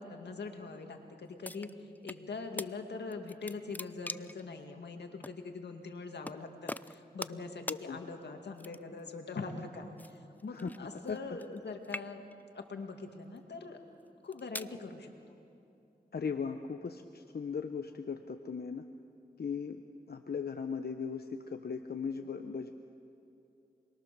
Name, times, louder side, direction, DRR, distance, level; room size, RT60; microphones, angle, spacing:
voice 1, 0.0-12.2 12.5-13.8 14.2-15.1, left 4 dB, 85° left, 4 dB, 2.1 m, -43 dB
sound 1, 1.4-2.2 2.6-2.7 3.1-4.4 5.2-5.4 6.2-6.4 6.7-7.4 7.7-7.8 8.6-9.0 10.0-11.6 11.8-12.4 13.1-13.4 14.1-14.7, left 1 dB, 10° left, 0.5 m, -42 dB
voice 2, 16.1-18.9 19.4-19.8 20.1-22.7, left 6 dB, 65° left, 6 dB, 1.0 m, -38 dB
28.0 x 21.5 x 6.8 m, 2.8 s
cardioid pair, 45°, 17 cm